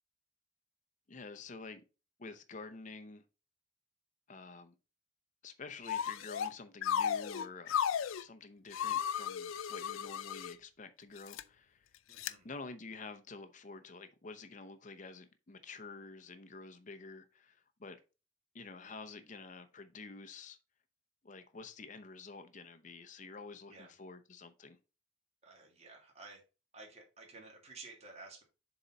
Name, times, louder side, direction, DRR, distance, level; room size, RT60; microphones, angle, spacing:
voice 1, 1.1-1.8 2.2-3.2 4.3-4.8 5.4-7.8 8.2-11.9 12.4-18.0 18.5-20.6 21.2-24.8, left 3 dB, 40° left, 0.7 m, -49 dB
sound 1, 5.9-6.5 6.8-8.2 8.7-10.5 11.2-11.4 12.2-12.3, left 8 dB, 90° left, 0.4 m, -35 dB
voice 2, 12.1-12.5 23.7-23.9 25.4-26.4 26.7-28.4, right 3 dB, 35° right, 1.8 m, -53 dB
7.0 x 4.0 x 4.1 m
head